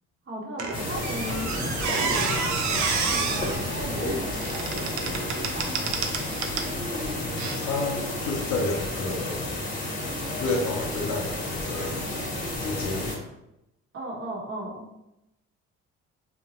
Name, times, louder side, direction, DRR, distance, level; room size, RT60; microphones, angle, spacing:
voice 1, 0.3-1.5 1.7-6.4 13.9-14.9, right 1 dB, 45° right, -2 dB, 0.9 m, -37 dB
Squeak, 0.6-6.7 7.4-7.6, right 5 dB, 65° right, 0.5 m, -30 dB
sound 1, 0.7-13.2, left 2 dB, 25° left, 0.8 m, -31 dB
sound 2, 0.7-9.2, right 3 dB, 15° right, 0.4 m, -43 dB
voice 2, 7.6-9.4 10.4-12.0 12.6-13.1, left 3 dB, 75° left, 2 dB, 0.7 m, -30 dB
2.9 x 2.1 x 2.9 m, 0.88 s
supercardioid pair, 75°, 31 cm